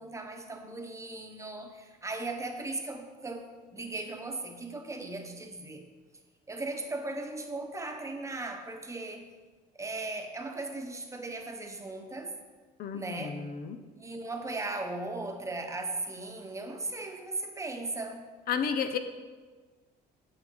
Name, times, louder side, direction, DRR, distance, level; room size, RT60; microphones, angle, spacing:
voice 1, 0.0-3.5 3.7-5.8 6.5-9.3 9.8-12.4 12.9-13.3 14.0-18.3, right 2 dB, 15° right, 3 dB, 1.0 m, -37 dB
voice 2, 12.8-13.8 18.5-19.0, left 7 dB, 60° left, 9 dB, 0.7 m, -32 dB
9.2 x 7.0 x 3.9 m, 1.4 s
cardioid pair, 110°, 17 cm